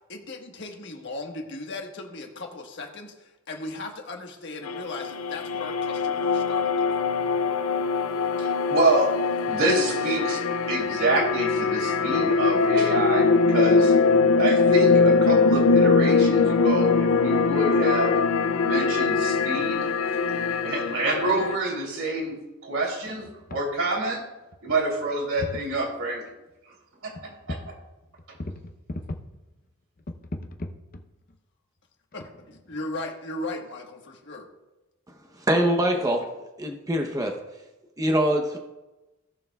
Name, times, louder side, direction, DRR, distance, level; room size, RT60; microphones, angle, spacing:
voice 1, 0.1-7.0 32.7-34.5, left 2 dB, 55° left, 2 dB, 1.4 m, -37 dB
sound 1, 4.7-21.6, left 4 dB, 85° left, 0.5 m, -22 dB
voice 2, 8.4-10.4 10.7-13.9 14.4-18.1 18.6-19.9 20.3-20.4 20.6-22.4 22.6-24.2 24.6-26.2 27.0-27.1 27.5-27.6, right 2 dB, 85° right, -2 dB, 3.1 m, -27 dB
sound 2, 23.2-23.6 24.2-24.3 24.5-25.1 25.4-25.7 27.2-27.8 28.0-29.4 30.0-31.4 32.1-33.0, left 1 dB, 40° left, 0.7 m, -37 dB
voice 3, 35.5-36.2 36.6-37.4 38.0-38.6, right 1 dB, 15° right, 3 dB, 0.7 m, -23 dB
18.0 x 6.7 x 2.3 m, 1.0 s
head